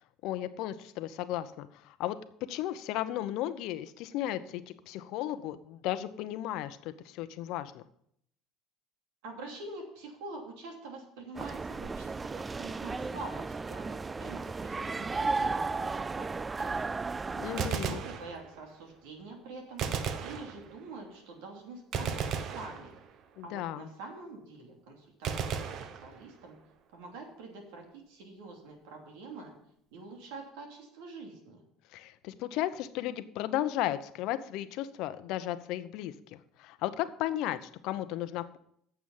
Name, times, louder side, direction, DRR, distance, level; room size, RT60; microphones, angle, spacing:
voice 1, 0.2-2.2 2.5-7.8 17.3-18.0 23.4-23.9 31.9-38.6, left 13 dB, 70° left, 12 dB, 0.8 m, -35 dB
voice 2, 9.2-17.0 17.8-19.9 20.2-22.9 23.4-25.7 26.0-26.6 26.9-29.5 29.9-31.6, right 3 dB, 80° right, 1 dB, 2.9 m, -46 dB
sound 1, 11.3-17.7, right 4 dB, 25° right, 0.3 m, -34 dB
Gunshot gunfire, 17.4-18.8 19.8-21.0 21.9-23.4 25.2-26.6, right 7 dB, 55° right, 1.0 m, -35 dB
8.9 x 7.0 x 7.3 m, 0.69 s
supercardioid pair, 80°, 0 cm